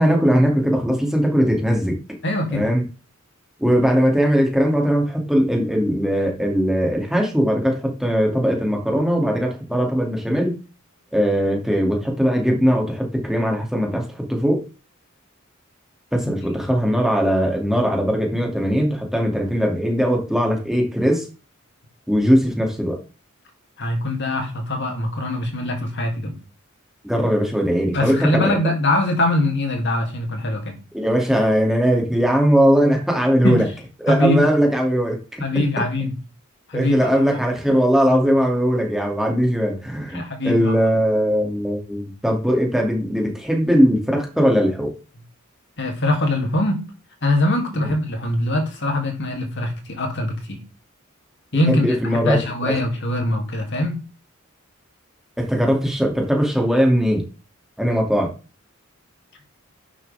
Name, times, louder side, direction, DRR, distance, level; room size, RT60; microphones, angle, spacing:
voice 1, 0.0-2.0 2.5-2.8 3.6-10.6 11.1-14.6 16.1-21.3 22.1-23.0 27.0-28.6 30.9-33.7 34.0-35.6 36.7-45.0 47.7-47.9 51.7-52.8 55.4-57.2 57.8-58.3, equal, ahead, 1 dB, 2.5 m, -20 dB
voice 2, 2.2-2.7 23.8-26.3 27.9-30.8 33.4-33.6 34.1-34.4 35.4-36.1 36.7-37.1 40.1-40.7 45.8-46.8 47.2-50.6 51.5-54.0, left 1 dB, 55° left, 3 dB, 2.8 m, -22 dB
11.5 x 7.2 x 3.5 m, 0.33 s
head